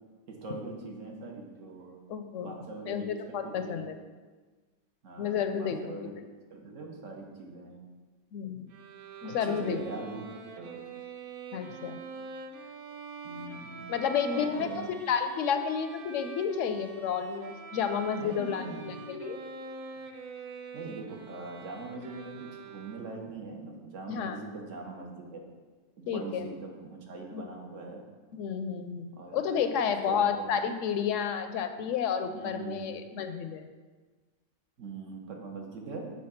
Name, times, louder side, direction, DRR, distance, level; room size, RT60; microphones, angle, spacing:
voice 1, 0.3-2.0 2.4-3.1 3.4-3.9 5.0-6.1 6.5-7.8 9.2-10.7 13.2-13.8 14.3-14.9 18.1-19.1 20.7-25.4 26.0-28.0 29.1-30.5 32.3-32.9 34.8-36.1, right 3 dB, 75° right, 1 dB, 1.4 m, -42 dB
voice 2, 2.1-4.0 5.2-5.9 8.3-8.7 9.2-9.8 11.5-12.0 13.9-14.7 15.1-19.4 24.1-24.4 26.1-26.5 27.3-27.4 28.3-33.7, left 7 dB, 75° left, 8 dB, 0.9 m, -31 dB
Bowed string instrument, 8.7-23.3, right 5 dB, 60° right, 0.6 m, -45 dB
7.7 x 3.5 x 5.7 m, 1.4 s
omnidirectional pair, 1.3 m